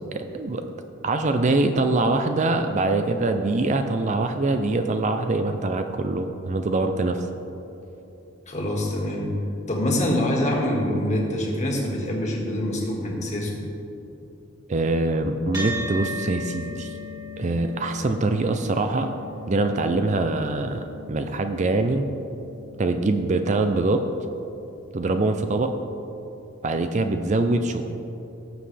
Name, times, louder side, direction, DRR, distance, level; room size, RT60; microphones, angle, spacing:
voice 1, 0.1-0.6 1.0-7.3 14.7-16.9 17.4-19.1 19.5-22.1 22.8-24.0 24.9-25.7 26.6-27.8, right 2 dB, 35° right, 7 dB, 0.4 m, -23 dB
voice 2, 8.5-9.3 9.7-13.6, left 1 dB, 35° left, -2 dB, 1.8 m, -25 dB
sound 1, 15.5-24.2, left 1 dB, 20° right, 2.5 m, -38 dB
17.5 x 7.3 x 3.3 m, 2.9 s
head